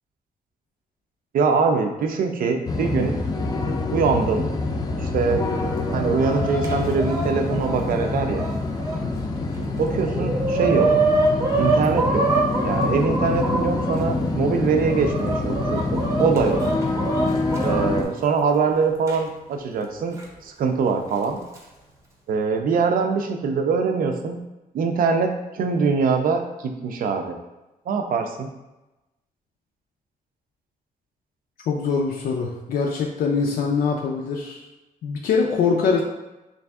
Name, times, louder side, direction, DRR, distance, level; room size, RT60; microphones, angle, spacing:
voice 1, 1.3-3.1 3.9-4.5 5.0-5.4 5.9-8.5 9.8-11.0 11.6-12.3 12.6-16.6 17.6-20.2 20.4-21.4 22.3-24.4 24.7-27.4 27.9-28.5, right 5 dB, 75° right, 4 dB, 0.5 m, -23 dB
sound 1, 2.7-18.0, left 3 dB, 25° left, 0.4 m, -26 dB
Chicken rooster, 5.5-9.0 9.5-9.6 9.9-13.9 14.6-17.8 19.1-19.2 20.2-20.3 21.2-21.6, right 3 dB, 20° right, 0.6 m, -25 dB
voice 2, 31.7-34.6 35.0-36.0, left 5 dB, 90° left, -1 dB, 0.4 m, -23 dB
3.2 x 2.5 x 3.4 m, 1.0 s
cardioid pair, 125°, 15 cm